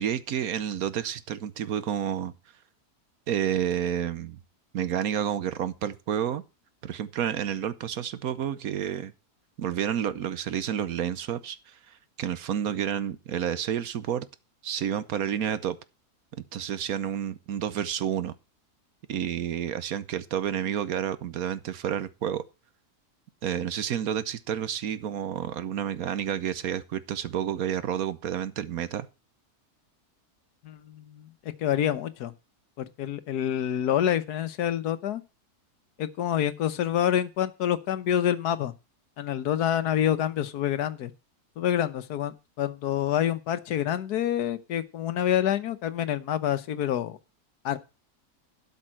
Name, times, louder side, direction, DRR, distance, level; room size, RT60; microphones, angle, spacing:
voice 1, 0.0-2.3 3.3-4.4 4.7-6.4 6.8-9.1 9.6-14.3 14.6-15.8 16.5-18.3 19.1-22.4 23.4-29.1, right 9 dB, 70° right, 1.2 m, -30 dB
voice 2, 30.6-31.3 31.6-32.3 32.8-35.2 36.0-38.7 39.2-41.1 41.6-47.2 47.6-47.8, left 10 dB, 85° left, 1.4 m, -27 dB
12.5 x 5.5 x 7.4 m
omnidirectional pair, 1.6 m